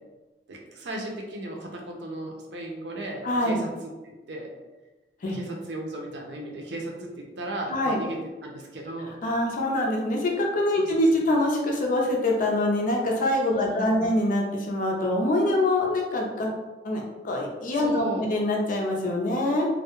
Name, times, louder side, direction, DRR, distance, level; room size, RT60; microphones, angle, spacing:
voice 1, 0.5-4.5 5.3-9.2 10.8-10.9 13.5-14.1 17.7-18.3, right 1 dB, 75° right, 0 dB, 0.5 m, -36 dB
voice 2, 3.2-3.6 5.2-5.4 7.7-8.0 9.2-16.5 16.8-19.7, left 1 dB, 50° left, 0 dB, 0.5 m, -24 dB
2.3 x 2.1 x 2.9 m, 1.2 s
head